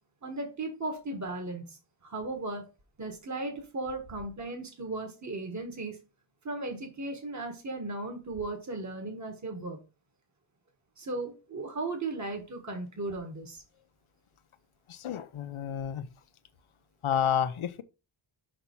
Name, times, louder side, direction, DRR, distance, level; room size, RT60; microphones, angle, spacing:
voice 1, 0.2-2.7 3.0-6.0 6.4-9.8 11.0-13.6, right 2 dB, 35° right, 1.6 m, -36 dB
voice 2, 14.9-16.1 17.0-17.8, left 8 dB, 90° left, 0.8 m, -30 dB
5.6 x 5.1 x 4.6 m
wide cardioid pair, 105°, 48 cm